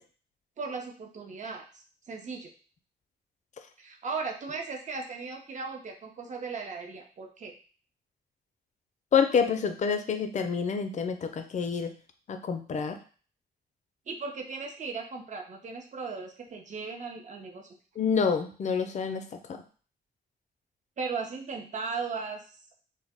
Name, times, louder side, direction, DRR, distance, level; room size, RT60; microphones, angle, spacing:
voice 1, 0.6-2.5 3.8-7.5 14.1-17.7 21.0-22.7, right 4 dB, 45° right, 2 dB, 0.5 m, -37 dB
voice 2, 9.1-11.9 12.3-13.0 18.0-19.6, left 6 dB, 40° left, 7 dB, 0.4 m, -27 dB
2.1 x 2.0 x 3.4 m, 0.40 s
cardioid pair, 105°, 18 cm